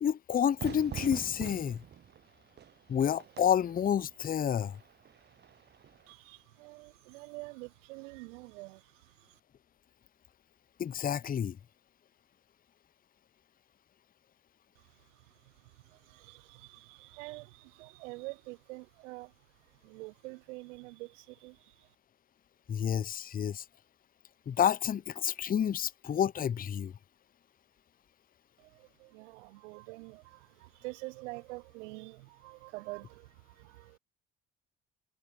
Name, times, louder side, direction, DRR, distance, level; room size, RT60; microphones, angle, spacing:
voice 1, 0.0-1.8 2.9-4.8 10.8-11.6 22.7-23.6 24.5-26.9, left 9 dB, 25° left, 0.5 m, -29 dB
Fire / Fireworks, 0.6-6.1, right 9 dB, 30° right, 0.5 m, -45 dB
voice 2, 6.1-9.4 14.8-21.9 28.6-34.0, right 24 dB, 80° right, 0.6 m, -47 dB
hypercardioid pair, 50°, 36 cm